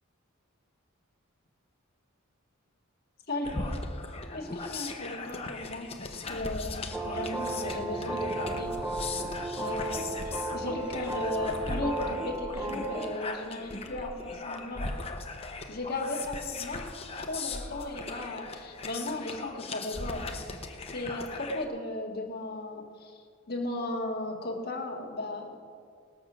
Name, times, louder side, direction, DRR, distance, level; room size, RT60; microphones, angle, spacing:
voice 1, 3.3-3.8 4.3-8.7 9.5-14.9 15.7-16.9 17.2-20.3 20.9-23.2 23.5-25.6, left 2 dB, 45° left, 1 dB, 1.7 m, -36 dB
sound 1, 3.4-21.6, left 3 dB, 25° left, 0.7 m, -39 dB
sound 2, 6.4-12.2, equal, 55° right, 2.4 m, -46 dB
sound 3, 6.9-13.2, right 2 dB, 10° right, 0.5 m, -35 dB
19.5 x 7.3 x 6.1 m, 2.2 s
head